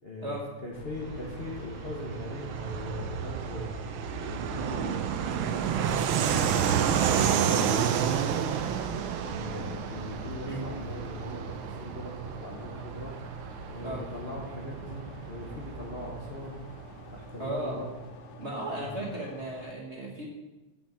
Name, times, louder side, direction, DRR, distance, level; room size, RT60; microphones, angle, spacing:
voice 1, 0.0-0.4 0.6-3.7 4.2-5.0 5.3-8.7 9.2-13.1 13.7-16.6 17.1-17.9 18.7-19.0, left 2 dB, 40° left, -3 dB, 0.9 m, -40 dB
sound 1, 0.7-19.7, left 2 dB, 80° left, 1.7 m, -48 dB
Fixed-wing aircraft airplane, 1.0-17.2, right 8 dB, 75° right, 1.4 m, -31 dB
voice 2, 17.4-17.8 18.4-20.3, right 1 dB, 40° right, -2 dB, 1.2 m, -35 dB
6.3 x 5.8 x 7.2 m, 1.1 s
omnidirectional pair, 2.4 m